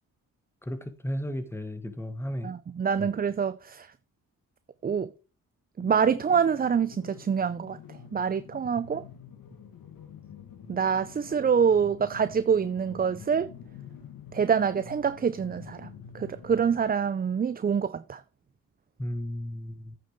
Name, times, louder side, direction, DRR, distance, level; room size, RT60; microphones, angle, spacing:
voice 1, 0.7-2.5 3.0-3.1 19.0-20.0, equal, 5° left, 1.5 m, -34 dB
voice 2, 2.4-3.9 4.8-5.1 5.8-7.8 8.1-9.0 10.7-13.5 14.3-15.9 16.1-18.2, right 7 dB, 25° right, 0.4 m, -26 dB
sound 1, 5.8-16.8, left 7 dB, 80° left, 1.6 m, -47 dB
9.0 x 6.8 x 3.5 m
cardioid pair, 70°, 34 cm